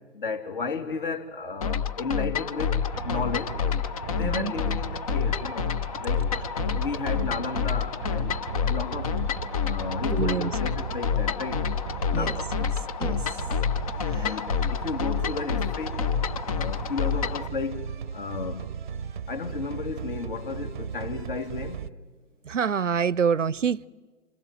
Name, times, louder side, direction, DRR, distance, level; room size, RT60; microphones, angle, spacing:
voice 1, 0.1-3.5 4.1-5.7 6.0-6.3 6.7-9.1 9.6-11.6 12.1-12.5 13.3-13.5 14.1-16.0 16.6-17.9 18.1-18.7 19.3-21.8, left 4 dB, 45° left, 3.3 m, -33 dB
sound 1, 1.6-17.5, left 7 dB, 30° left, 0.8 m, -28 dB
sound 2, 2.6-21.9, right 7 dB, 40° right, 0.8 m, -37 dB
voice 2, 4.2-4.5 10.1-10.5 12.1-12.4 13.0-13.2 14.1-14.3 22.4-23.9, right 6 dB, 85° right, 0.7 m, -26 dB
27.5 x 26.0 x 7.8 m
figure-of-eight pair, 140°, 36 cm